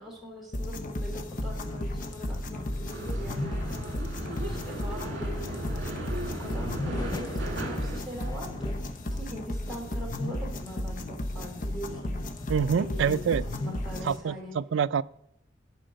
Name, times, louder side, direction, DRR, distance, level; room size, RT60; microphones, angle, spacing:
voice 1, 0.0-12.1 12.8-14.5, equal, ahead, -5 dB, 2.8 m, -42 dB
sound 1, 0.5-14.2, left 1 dB, 45° left, 0.8 m, -34 dB
sound 2, 0.9-14.2, left 2 dB, 20° left, 0.5 m, -44 dB
sound 3, 2.9-8.0, right 1 dB, 65° right, 2.0 m, -37 dB
voice 2, 12.5-13.4 14.0-15.0, right 7 dB, 85° right, 14 dB, 0.4 m, -26 dB
11.5 x 4.5 x 7.6 m, 0.75 s
head